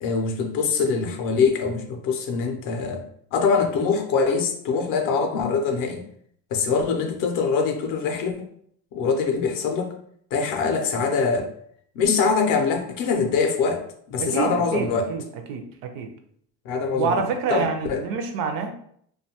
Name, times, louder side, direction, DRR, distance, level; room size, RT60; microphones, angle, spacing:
voice 1, 0.0-3.0 3.3-6.0 6.5-8.5 8.9-9.9 10.3-11.5 12.0-15.1 16.6-17.2 17.5-18.0, left 5 dB, 50° left, 5 dB, 0.5 m, -23 dB
voice 2, 14.2-15.2 15.5-16.1 16.9-18.7, right 5 dB, 55° right, 6 dB, 0.5 m, -27 dB
2.5 x 2.2 x 2.8 m, 0.65 s
cardioid pair, 140°, 43 cm